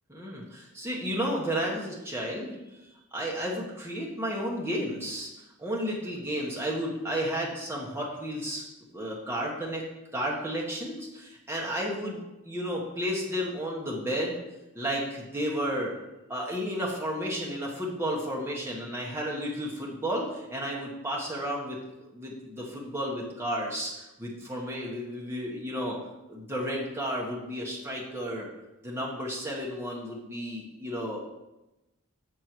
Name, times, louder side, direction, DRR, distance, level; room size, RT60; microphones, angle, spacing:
voice 1, 0.1-2.8 3.1-5.3 5.6-8.6 8.9-9.8 10.1-14.4 14.7-15.9 16.3-21.8 22.1-26.0 26.3-28.5 28.8-31.2, equal, 10° right, -3 dB, 1.3 m, -32 dB
6.6 x 6.5 x 4.6 m, 1.0 s
head